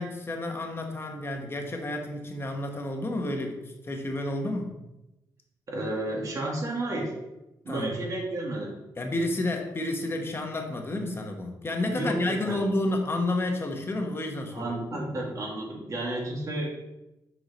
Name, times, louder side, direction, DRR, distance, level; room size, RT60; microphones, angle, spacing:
voice 1, 0.0-4.8 7.7-7.9 9.0-15.0, left 2 dB, 30° left, 3 dB, 1.1 m, -30 dB
voice 2, 5.7-7.1 7.6-8.8 11.8-12.6 14.5-16.8, right 1 dB, 45° right, -1 dB, 1.9 m, -32 dB
6.2 x 4.6 x 4.1 m, 0.97 s
cardioid pair, 90°, 8 cm